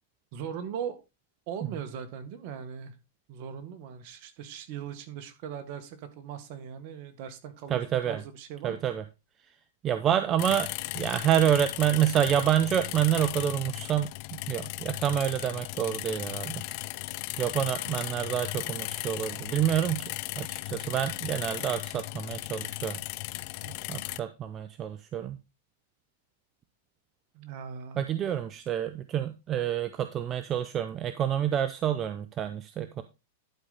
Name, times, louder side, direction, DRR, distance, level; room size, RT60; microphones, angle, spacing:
voice 1, 0.3-1.0 1.5-2.9 3.3-8.9 23.6-24.0 27.3-28.0, right 8 dB, 50° right, 8 dB, 1.7 m, -40 dB
voice 2, 7.7-8.2 8.6-9.0 9.8-16.6 17.4-23.0 23.9-25.4 28.0-33.0, right 10 dB, 30° right, 10 dB, 0.7 m, -28 dB
sound 1, 10.4-24.2, left 21 dB, 50° left, 0.4 m, -36 dB
11.5 x 4.9 x 4.1 m, 0.26 s
hypercardioid pair, 130°, 0 cm